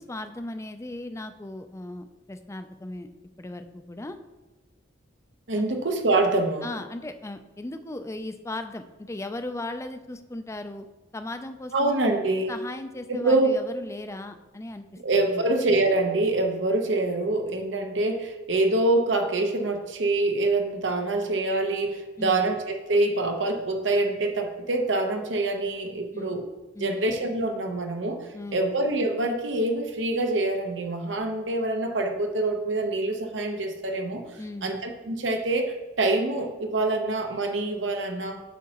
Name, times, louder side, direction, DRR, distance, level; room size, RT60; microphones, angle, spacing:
voice 1, 0.0-3.1 3.4-4.2 5.6-5.8 6.6-10.8 11.1-12.1 12.5-14.8 15.2-15.5 22.2-22.5 26.1-26.4 26.7-27.0 28.3-28.7 34.4-34.7, left 2 dB, 15° left, 8 dB, 0.4 m, -37 dB
voice 2, 5.5-6.7 11.7-12.5 13.1-13.5 15.0-26.4 26.8-28.2 28.5-38.4, right 2 dB, 80° right, 4 dB, 1.0 m, -25 dB
8.3 x 6.3 x 3.0 m, 1.2 s
head